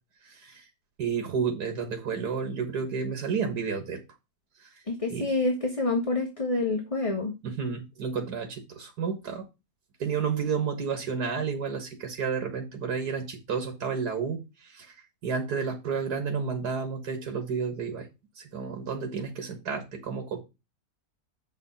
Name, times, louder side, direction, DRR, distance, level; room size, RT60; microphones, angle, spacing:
voice 1, 0.3-0.6 1.0-4.0 5.1-5.3 7.4-9.4 10.0-14.9 15.2-18.1 18.4-20.4, right 6 dB, 85° right, 5 dB, 2.1 m, -31 dB
voice 2, 4.9-7.3, left 2 dB, 25° left, 3 dB, 1.3 m, -27 dB
7.3 x 5.3 x 5.6 m, 0.25 s
omnidirectional pair, 1.7 m